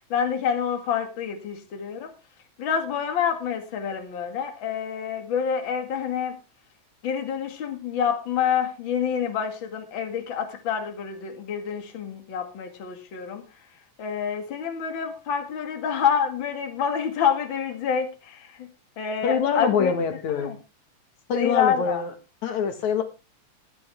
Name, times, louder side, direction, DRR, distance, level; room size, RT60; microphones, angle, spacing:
voice 1, 0.1-2.1 2.6-6.4 7.0-13.5 14.0-18.7 19.0-19.9 20.3-20.6 21.4-22.0, left 7 dB, 45° left, 2.4 m, -27 dB
voice 2, 19.2-20.5 21.3-22.1 22.4-23.0, left 6 dB, 80° left, 2.8 m, -24 dB
14.0 x 10.5 x 3.4 m
omnidirectional pair, 3.3 m